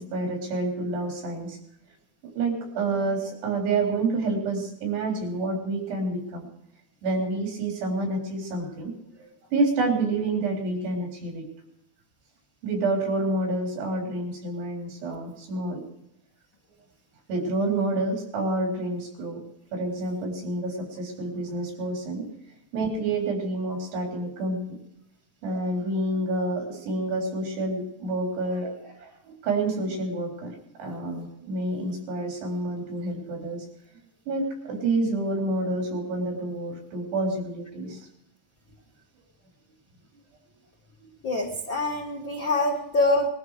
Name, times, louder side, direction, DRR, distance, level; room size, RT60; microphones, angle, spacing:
voice 1, 0.0-1.6 2.4-6.5 7.0-11.5 12.6-15.8 17.3-19.4 19.7-22.3 22.7-24.6 25.4-33.7 34.3-38.0, right 2 dB, 75° right, 1 dB, 5.9 m, -28 dB
voice 2, 41.2-43.3, left 2 dB, 60° left, 0 dB, 1.3 m, -25 dB
21.5 x 13.0 x 4.9 m, 0.78 s
omnidirectional pair, 4.8 m